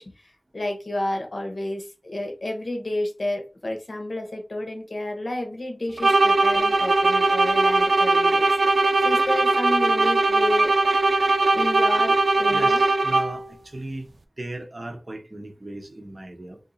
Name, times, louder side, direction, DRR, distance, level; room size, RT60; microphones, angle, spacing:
voice 1, 0.0-10.7 11.4-12.8, left 1 dB, 65° left, 1.0 m, -31 dB
sound 1, 6.0-13.5, right 2 dB, 85° right, 0.4 m, -20 dB
voice 2, 12.5-14.1 14.4-16.6, right 1 dB, 45° right, 0.9 m, -37 dB
2.8 x 2.7 x 3.9 m
wide cardioid pair, 55°, 0 cm